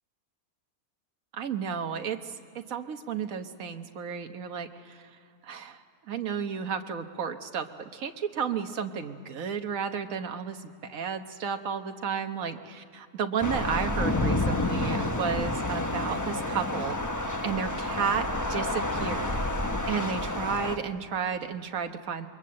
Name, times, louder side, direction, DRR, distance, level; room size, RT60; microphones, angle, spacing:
voice 1, 1.4-5.0 5.4-5.8 6.1-7.7 7.9-17.0 17.4-19.4 19.9-22.3, right 7 dB, 70° right, 6 dB, 1.5 m, -32 dB
Thunder / Rain, 13.4-20.8, left 1 dB, 15° left, 0.9 m, -29 dB
27.5 x 22.0 x 7.6 m, 2.7 s
omnidirectional pair, 1.5 m